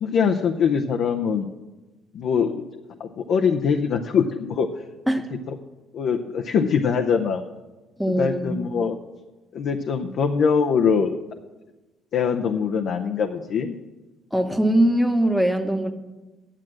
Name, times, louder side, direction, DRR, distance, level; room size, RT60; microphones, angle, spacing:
voice 1, 0.0-1.5 2.1-2.6 3.0-4.8 5.5-5.6 5.9-7.4 8.1-9.0 9.5-11.2 12.1-13.7, left 6 dB, 65° left, 4 dB, 0.7 m, -23 dB
voice 2, 8.0-8.7 14.3-15.9, right 1 dB, ahead, 3 dB, 1.0 m, -21 dB
10.0 x 7.5 x 7.6 m, 1.1 s
supercardioid pair, 80°, 0 cm